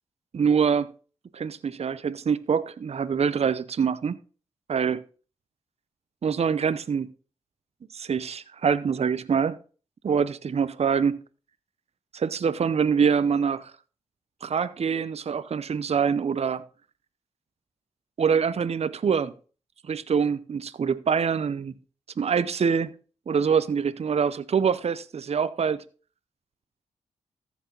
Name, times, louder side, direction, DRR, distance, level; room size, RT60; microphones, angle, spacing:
voice 1, 0.3-0.9 1.3-4.2 4.7-5.0 6.2-7.1 7.9-9.6 10.0-11.2 12.1-13.7 14.4-16.6 18.2-19.3 19.9-21.7 22.2-22.9 23.3-25.8, right 6 dB, 50° right, 0.7 m, -25 dB
14.0 x 6.1 x 3.9 m
supercardioid pair, 45°, 13 cm